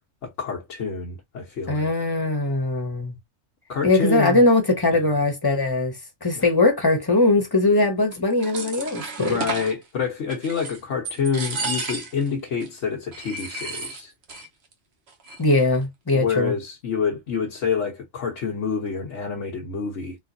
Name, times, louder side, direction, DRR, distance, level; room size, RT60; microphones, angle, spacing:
voice 1, 0.2-1.9 3.7-4.4 4.9-5.1 6.4-6.5 9.2-14.1 16.1-20.2, left 6 dB, 70° left, 1.3 m, -27 dB
voice 2, 1.7-3.2 3.8-9.4 15.4-16.5, left 2 dB, 20° left, 1.2 m, -21 dB
sound 1, 8.1-9.7 10.3-10.8 11.0-12.3 12.6-12.7 13.1-14.5 14.7-14.8 15.1-15.6, right 3 dB, 55° right, 1.3 m, -32 dB
3.8 x 3.1 x 2.6 m
omnidirectional pair, 1.3 m